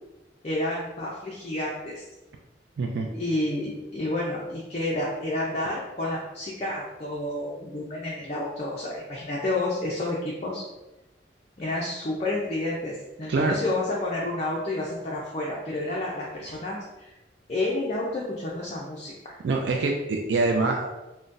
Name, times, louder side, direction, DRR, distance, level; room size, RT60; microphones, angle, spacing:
voice 1, 0.4-2.1 3.1-10.6 11.6-17.1 17.5-19.3, left 2 dB, 35° left, -4 dB, 0.4 m, -30 dB
voice 2, 2.8-3.1 13.3-13.5 16.5-16.6 19.4-20.9, right 3 dB, 75° right, 2 dB, 0.3 m, -25 dB
3.8 x 2.1 x 2.5 m, 0.99 s
head